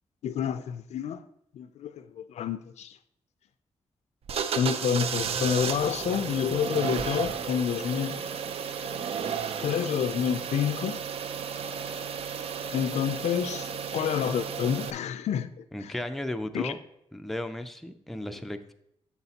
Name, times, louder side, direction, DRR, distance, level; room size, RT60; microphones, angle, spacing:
voice 1, 0.2-1.2 1.5-3.0 4.6-8.3 9.6-11.0 12.7-15.9 16.5-16.7, left 8 dB, 90° left, 0.4 m, -29 dB
sound 1, 4.3-14.9, right 7 dB, 65° right, 0.4 m, -33 dB
voice 2, 15.7-16.8 17.1-18.7, left 1 dB, ahead, 0.4 m, -35 dB
8.0 x 7.1 x 2.9 m
wide cardioid pair, 160°, 11 cm